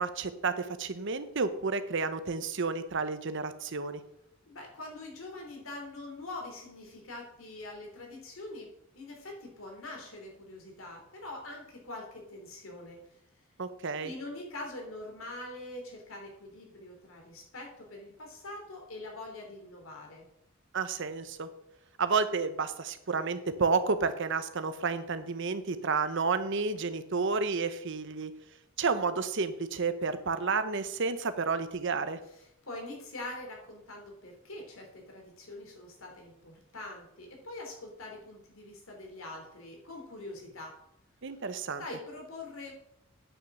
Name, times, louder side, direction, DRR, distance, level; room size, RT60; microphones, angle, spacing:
voice 1, 0.0-4.0 13.6-14.1 20.7-21.5 22.0-28.3 28.8-32.2 41.2-41.8, right 4 dB, 60° right, 11 dB, 0.9 m, -31 dB
voice 2, 4.5-13.0 14.0-20.3 32.3-40.8 41.8-42.7, left 2 dB, 80° left, 1 dB, 3.3 m, -44 dB
9.4 x 6.4 x 6.1 m, 0.77 s
head